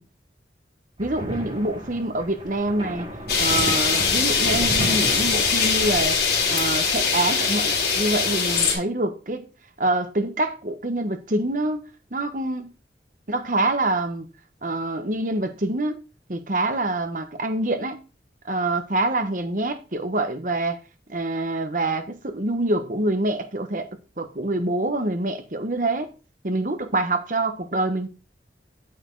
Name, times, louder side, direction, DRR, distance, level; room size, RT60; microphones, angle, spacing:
sound 1, 1.0-6.0, right 1 dB, 30° right, 5.8 m, -35 dB
voice 1, 1.0-3.1 3.4-6.2 6.5-9.5 9.8-11.8 12.1-12.7 13.3-14.3 14.6-16.0 16.3-18.0 18.4-20.8 21.1-23.9 24.2-26.1 26.4-28.1, right 2 dB, 50° right, 1.2 m, -26 dB
sound 2, 3.3-8.7, left 5 dB, 60° left, 3.3 m, -22 dB
8.7 x 7.3 x 3.9 m
head